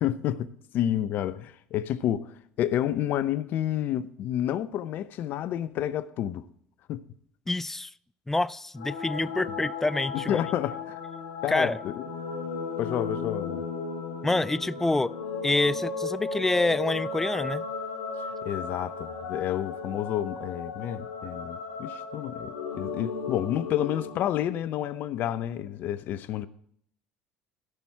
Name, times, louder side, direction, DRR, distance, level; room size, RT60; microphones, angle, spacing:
voice 1, 0.0-6.5 6.9-7.0 10.1-11.0 11.4-12.0 12.8-13.7 18.4-26.5, left 11 dB, 60° left, 0.7 m, -30 dB
voice 2, 7.5-7.9 8.3-10.4 11.5-11.8 14.2-15.1 15.4-17.6, left 2 dB, 10° left, 0.3 m, -27 dB
sound 1, 8.8-24.3, left 4 dB, 85° left, 1.5 m, -35 dB
16.5 x 6.1 x 4.5 m
hypercardioid pair, 75°, 4 cm